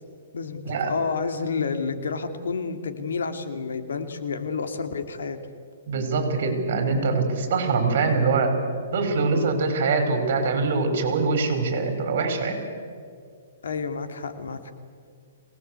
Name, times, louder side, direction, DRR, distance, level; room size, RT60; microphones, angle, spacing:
voice 1, 0.3-5.4 13.6-14.7, left 5 dB, 90° left, 7 dB, 2.6 m, -30 dB
voice 2, 5.8-8.6 8.9-12.6, right 4 dB, 50° right, 6 dB, 5.6 m, -23 dB
23.5 x 19.0 x 8.3 m, 2.2 s
hypercardioid pair, 160°, 0 cm